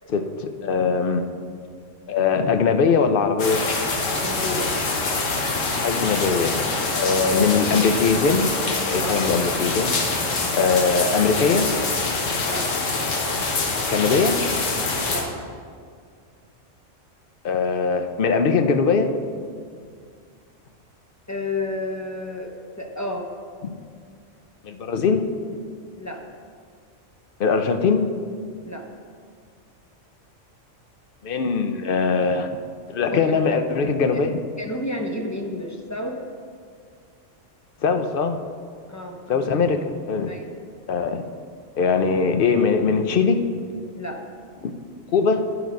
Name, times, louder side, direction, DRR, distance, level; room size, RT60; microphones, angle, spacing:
voice 1, 0.1-1.2 2.1-3.7 5.8-6.6 6.9-8.5 8.9-9.9 10.5-11.7 13.9-14.4 17.4-19.2 23.6-23.7 24.6-25.3 27.4-28.1 31.2-32.6 32.9-34.4 37.8-38.4 39.3-40.3 40.9-41.2 41.8-43.4 44.6-44.7 45.1-45.4, left 5 dB, 55° left, 8 dB, 0.7 m, -21 dB
sound 1, 3.4-15.2, left 3 dB, 90° left, 1.5 m, -25 dB
voice 2, 4.1-4.8 9.0-9.3 12.4-12.7 15.0-15.3 21.3-22.5 22.8-23.3 26.0-26.2 28.6-28.9 33.1-33.4 34.1-34.2 34.6-36.2 38.9-39.5 40.3-40.4 43.9-44.2, left 1 dB, 20° left, 2 dB, 0.6 m, -31 dB
9.7 x 6.1 x 5.2 m, 2.1 s
omnidirectional pair, 1.3 m